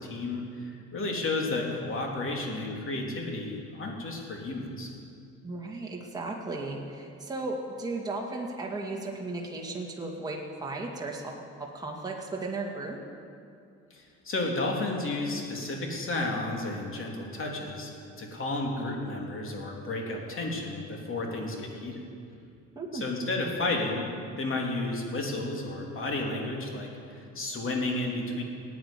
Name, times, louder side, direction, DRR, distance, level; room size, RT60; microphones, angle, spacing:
voice 1, 0.0-4.9 13.9-17.9 18.2-22.0 22.9-28.4, left 2 dB, 45° left, 0 dB, 3.3 m, -32 dB
voice 2, 5.4-11.3 11.6-13.0 22.8-23.1, right 2 dB, 15° right, -2 dB, 2.3 m, -35 dB
16.5 x 9.4 x 8.6 m, 2.4 s
cardioid pair, 95°, 30 cm